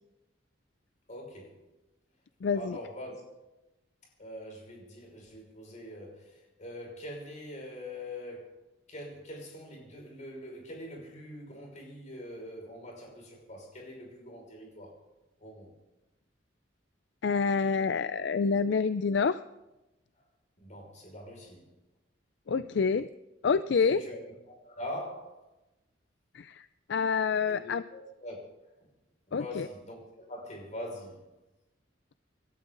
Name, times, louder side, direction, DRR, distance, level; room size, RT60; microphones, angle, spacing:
voice 1, 1.1-1.6 2.5-3.1 4.2-8.6 8.9-15.0 15.4-15.7 20.6-21.7 23.8-24.3 24.6-25.4 27.5-28.4 29.3-31.3, left 1 dB, 40° left, 5.6 m, -43 dB
voice 2, 2.4-2.8 17.2-19.4 22.5-23.1 23.4-24.0 26.3-27.8 29.3-29.7, left 5 dB, 65° left, 0.4 m, -27 dB
26.5 x 13.0 x 3.9 m
head